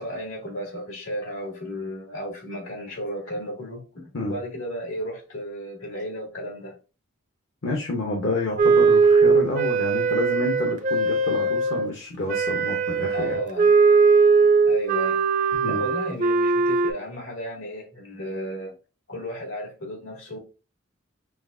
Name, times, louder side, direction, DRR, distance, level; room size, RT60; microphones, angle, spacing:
voice 1, 0.0-6.7 13.1-13.7 14.6-18.7 19.1-20.4, equal, 80° left, 2.0 m, -34 dB
voice 2, 7.6-13.4 15.5-15.8, left 2 dB, 60° left, 0.8 m, -29 dB
Wind instrument woodwind instrument, 8.6-11.9 12.3-16.9, right 4 dB, 40° right, 0.4 m, -20 dB
5.8 x 2.4 x 2.5 m
head